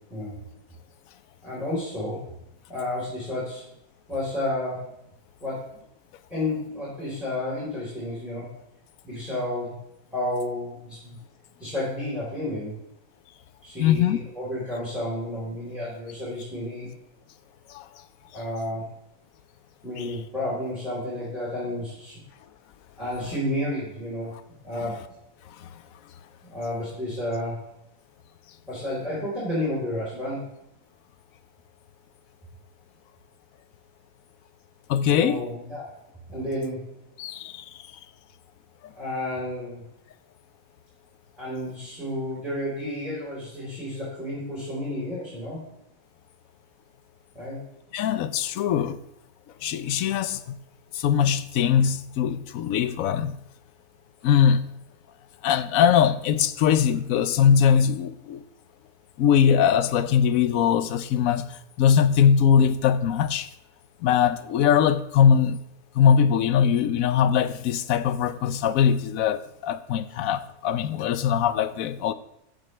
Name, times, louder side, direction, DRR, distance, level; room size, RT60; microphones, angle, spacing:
voice 1, 1.4-2.3 2.7-3.6 4.1-4.9 5.4-5.8 6.3-8.5 9.0-9.8 10.1-11.2 11.6-12.8 13.6-16.9 18.3-18.9 19.8-22.2 23.0-24.3 24.6-25.0 26.5-27.7 28.7-30.5 35.1-35.9 36.3-37.0 38.9-39.8 41.4-45.6 47.3-47.6, left 1 dB, ahead, 4.0 m, -31 dB
voice 2, 13.8-14.2 17.7-17.9 20.0-20.1 34.9-35.4 37.2-37.6 47.9-49.0 49.6-50.6 50.9-53.4 54.2-54.6 55.4-58.4 59.2-61.5 61.8-63.5 64.0-65.6 66.0-72.1, left 8 dB, 70° left, 1.0 m, -21 dB
14.0 x 8.9 x 3.3 m
omnidirectional pair, 1.7 m